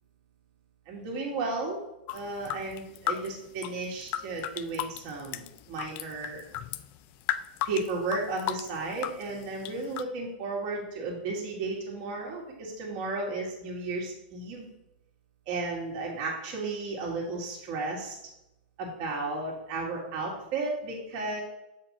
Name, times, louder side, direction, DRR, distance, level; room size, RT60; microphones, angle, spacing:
voice 1, 0.9-1.8 2.1-6.4 7.6-14.7 15.5-18.2 18.8-21.4, right 3 dB, 50° right, -2 dB, 2.3 m, -34 dB
sound 1, 2.1-10.0, left 12 dB, 45° left, 0.4 m, -35 dB
7.3 x 5.2 x 4.3 m, 0.89 s
hypercardioid pair, 130°, 5 cm